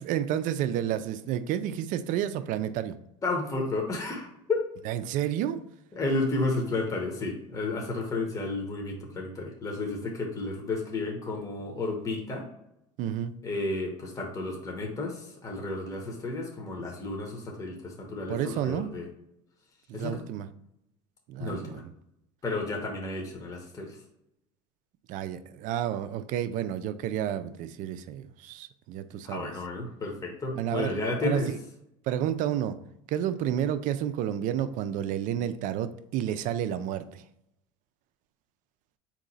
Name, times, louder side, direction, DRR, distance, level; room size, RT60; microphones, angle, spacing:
voice 1, 0.1-3.0 4.9-5.6 13.0-13.3 18.3-18.9 19.9-20.5 21.3-21.9 25.1-29.5 30.5-31.4 32.1-32.8 33.1-37.2, right 10 dB, 55° right, 12 dB, 0.4 m, -30 dB
voice 2, 3.2-4.6 5.9-12.4 13.4-19.1 19.9-20.2 21.4-21.8 22.4-24.0 29.2-31.5, left 2 dB, 20° left, 1 dB, 0.9 m, -32 dB
3.8 x 3.0 x 4.0 m, 0.81 s
supercardioid pair, 100°, 16 cm